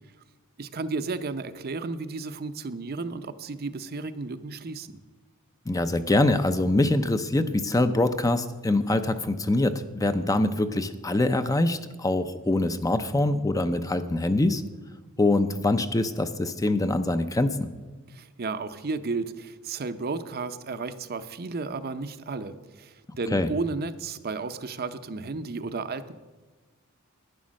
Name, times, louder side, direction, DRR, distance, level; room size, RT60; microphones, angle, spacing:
voice 1, 0.6-5.0 18.1-26.1, right 3 dB, 45° right, 11 dB, 0.6 m, -33 dB
voice 2, 5.7-14.6 15.2-17.6 23.3-23.5, left 2 dB, 15° left, 10 dB, 0.5 m, -24 dB
11.5 x 9.7 x 6.3 m, 1.3 s
head